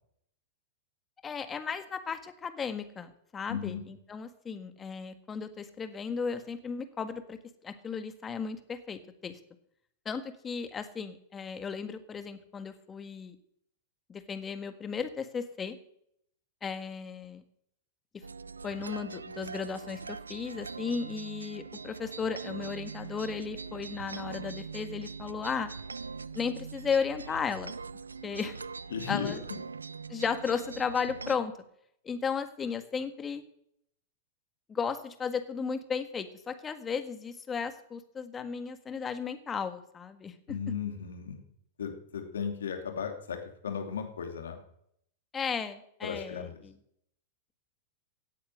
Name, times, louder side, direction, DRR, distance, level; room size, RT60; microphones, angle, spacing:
voice 1, 1.2-7.4 7.6-9.4 10.1-13.4 14.1-15.8 16.6-17.4 18.6-25.7 26.3-27.7 28.2-28.6 29.1-29.4 30.1-31.5 32.1-33.4 34.7-40.3 45.3-46.8, left 6 dB, 20° left, 9 dB, 1.6 m, -35 dB
voice 2, 3.5-3.8 28.9-29.3 40.5-41.4 41.8-44.6 46.0-46.6, left 7 dB, 70° left, 5 dB, 2.7 m, -35 dB
sound 1, 18.2-31.4, right 4 dB, 85° right, 0.5 m, -42 dB
17.0 x 8.5 x 6.5 m, 0.71 s
figure-of-eight pair, 95°, 0 cm